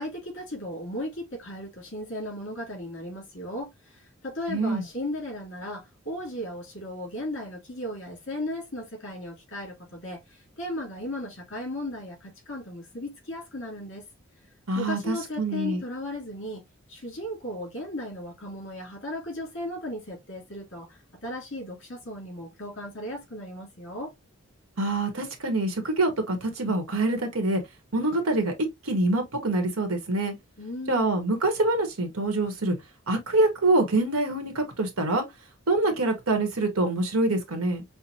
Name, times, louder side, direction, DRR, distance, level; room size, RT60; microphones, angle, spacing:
voice 1, 0.0-3.7 4.2-14.0 14.7-16.6 16.9-24.1 30.6-31.1, left 1 dB, 60° left, 2.9 m, -36 dB
voice 2, 4.5-4.8 14.7-15.8 24.8-27.6 27.9-28.5 28.9-30.3 30.9-32.8 33.1-35.2 35.7-37.8, right 2 dB, 80° right, 1.2 m, -25 dB
5.6 x 2.1 x 2.7 m
head